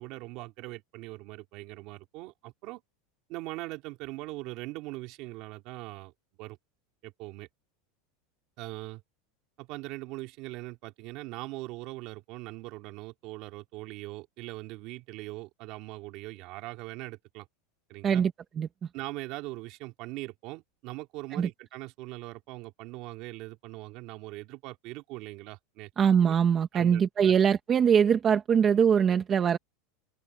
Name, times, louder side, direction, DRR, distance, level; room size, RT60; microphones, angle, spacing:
voice 1, 0.0-2.8 3.3-6.1 6.4-6.6 7.0-7.5 8.6-9.0 9.6-17.5 17.9-18.2 18.9-26.3 26.7-27.3, right 20 dB, 45° right, 2.9 m, -41 dB
voice 2, 18.0-18.7 21.4-21.5 26.0-29.6, right 7 dB, 20° right, 1.1 m, -23 dB
supercardioid pair, 165°, 0 cm